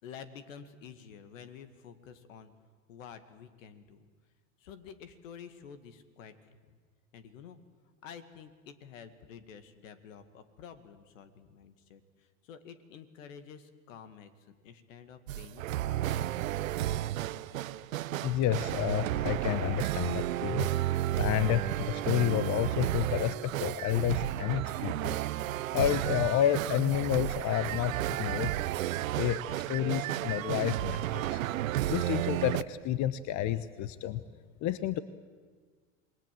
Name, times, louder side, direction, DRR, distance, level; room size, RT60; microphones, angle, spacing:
voice 1, 0.0-2.5 2.9-4.1 4.6-6.8 7.1-7.6 8.0-16.4, left 7 dB, 75° left, 10 dB, 2.1 m, -50 dB
sound 1, 15.3-32.6, right 14 dB, 80° right, 0.8 m, -32 dB
voice 2, 18.2-20.7 21.1-25.2 25.7-28.5 29.2-31.4 31.9-34.2 34.6-35.0, left 12 dB, 45° left, 15 dB, 1.0 m, -30 dB
27.5 x 20.5 x 7.7 m, 1.5 s
hypercardioid pair, 85°, 40 cm